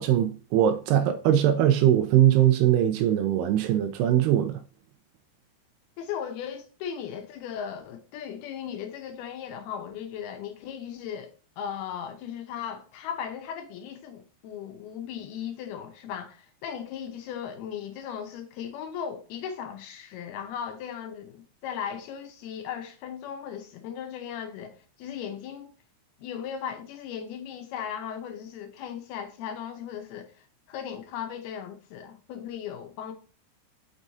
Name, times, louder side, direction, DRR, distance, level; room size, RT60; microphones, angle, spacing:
voice 1, 0.0-4.6, right 11 dB, 85° right, 2.4 m, -21 dB
voice 2, 6.0-25.7 26.2-33.1, left 8 dB, 75° left, 2.4 m, -37 dB
6.1 x 5.4 x 4.0 m
omnidirectional pair, 5.2 m